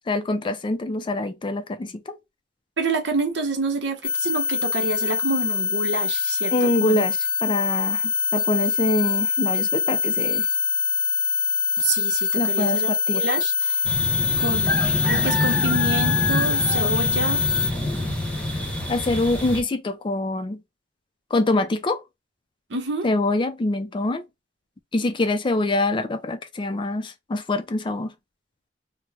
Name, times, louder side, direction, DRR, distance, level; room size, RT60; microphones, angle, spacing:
voice 1, 0.1-2.2 6.5-8.0 8.3-10.5 12.3-13.3 18.9-20.6 21.3-22.0 23.0-24.2 24.9-28.1, left 2 dB, 25° left, 0.3 m, -25 dB
voice 2, 2.8-7.0 8.0-8.1 11.8-13.8 14.4-17.5 22.7-23.1, right 3 dB, 80° right, 0.8 m, -28 dB
sound 1, 4.0-17.7, left 5 dB, 80° left, 0.6 m, -24 dB
sound 2, 13.8-19.6, left 1 dB, 5° left, 0.8 m, -26 dB
3.0 x 2.0 x 3.3 m
head